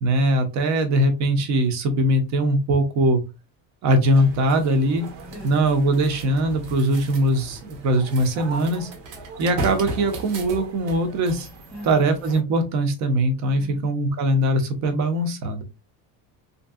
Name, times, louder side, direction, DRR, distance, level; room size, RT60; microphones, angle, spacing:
voice 1, 0.0-3.2 3.8-5.0 5.4-8.9 9.4-11.5 11.8-15.6, right 1 dB, 40° right, 7 dB, 0.6 m, -21 dB
sound 1, 4.0-12.4, right 2 dB, 85° right, 1.0 m, -36 dB
voice 2, 5.3-5.7 11.7-12.1 13.4-13.9, left 1 dB, ahead, -6 dB, 0.4 m, -41 dB
2.8 x 2.7 x 2.3 m, 0.27 s
cardioid pair, 175°, 43 cm